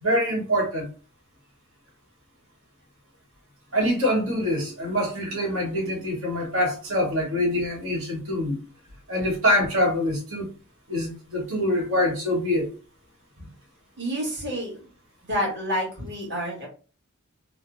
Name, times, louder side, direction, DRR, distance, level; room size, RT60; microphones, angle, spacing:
voice 1, 0.0-0.9 3.7-8.6 9.1-10.5 10.9-12.7, equal, 75° right, -1 dB, 1.2 m, -25 dB
voice 2, 14.0-14.9 15.3-16.7, equal, 50° right, -2 dB, 1.3 m, -29 dB
3.2 x 2.0 x 2.5 m, 0.36 s
head